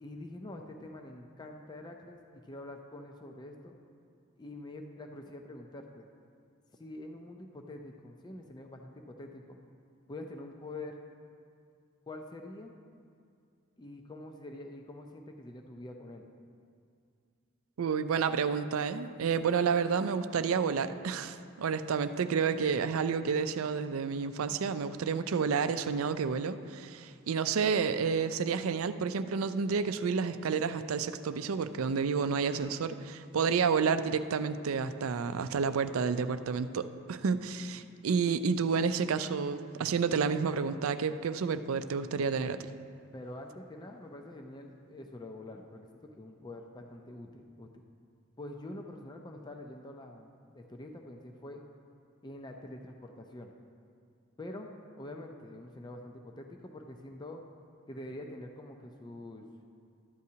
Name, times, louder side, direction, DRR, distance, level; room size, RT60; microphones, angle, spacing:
voice 1, 0.0-2.2 2.5-3.8 4.4-6.1 6.8-9.6 10.1-11.0 12.1-12.7 13.8-16.2 32.2-32.4 43.1-45.9 46.2-47.7 48.4-51.6 52.2-53.5 54.4-57.4 57.9-59.5, left 1 dB, 20° left, 3 dB, 0.5 m, -45 dB
voice 2, 17.8-42.6, right 5 dB, 90° right, 11 dB, 0.4 m, -30 dB
13.0 x 9.3 x 2.8 m, 2.3 s
head